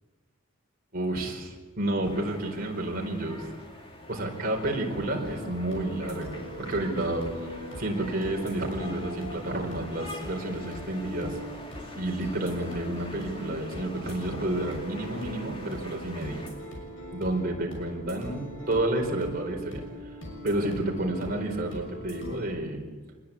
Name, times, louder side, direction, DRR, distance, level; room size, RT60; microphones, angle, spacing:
voice 1, 0.9-3.5 4.1-7.3 7.8-11.4 12.0-16.4 17.1-19.8 20.4-22.8, right 1 dB, 45° right, 1 dB, 4.6 m, -30 dB
sound 1, 2.0-16.5, left 1 dB, 25° left, 2.8 m, -45 dB
sound 2, 5.2-22.4, equal, 70° left, 6.5 m, -41 dB
26.5 x 20.5 x 8.6 m, 1.4 s
head